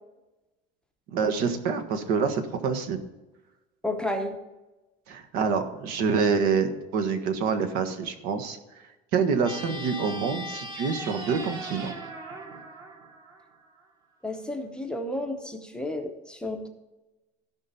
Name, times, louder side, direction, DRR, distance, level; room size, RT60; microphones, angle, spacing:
voice 1, 1.1-3.0 5.1-8.6 9.1-11.9, right 5 dB, 65° right, 8 dB, 1.4 m, -26 dB
voice 2, 3.8-4.4 14.2-16.7, left 1 dB, 5° left, 3 dB, 0.8 m, -32 dB
sound 1, 9.4-13.8, equal, 25° right, 1.3 m, -39 dB
16.0 x 5.7 x 4.3 m, 1.1 s
cardioid pair, 160°, 17 cm